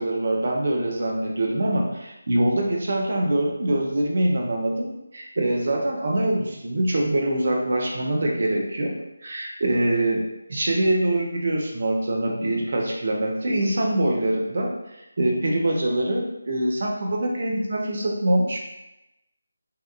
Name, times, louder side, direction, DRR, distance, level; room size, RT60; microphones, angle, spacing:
voice 1, 0.0-8.9 9.2-10.2 10.5-14.7 15.2-18.7, right 1 dB, 50° right, -1 dB, 0.6 m, -24 dB
2.8 x 2.2 x 2.3 m, 0.91 s
figure-of-eight pair, 160°, 0 cm